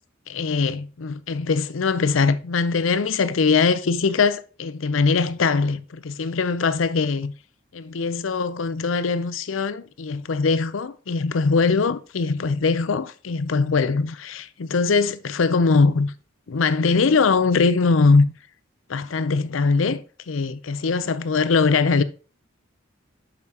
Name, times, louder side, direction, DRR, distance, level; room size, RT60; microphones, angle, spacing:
voice 1, 0.3-7.3 7.7-16.1 16.5-18.3 18.9-22.0, left 4 dB, 85° left, 0.6 m, -21 dB
8.4 x 6.6 x 2.9 m
head